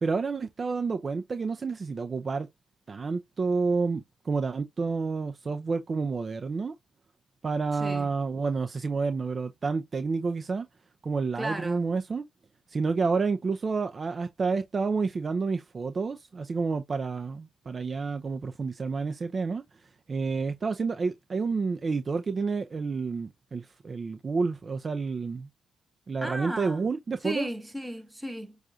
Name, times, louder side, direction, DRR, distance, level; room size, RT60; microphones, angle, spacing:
voice 1, 0.0-2.5 2.9-6.7 7.4-10.7 11.0-12.2 12.7-19.6 20.1-25.5 26.1-27.5, right 4 dB, 35° right, 0.5 m, -29 dB
voice 2, 7.7-8.1 11.3-11.9 26.2-26.9 27.2-28.6, equal, 5° right, 1.0 m, -35 dB
6.3 x 2.4 x 2.7 m
cardioid pair, 90°, 0 cm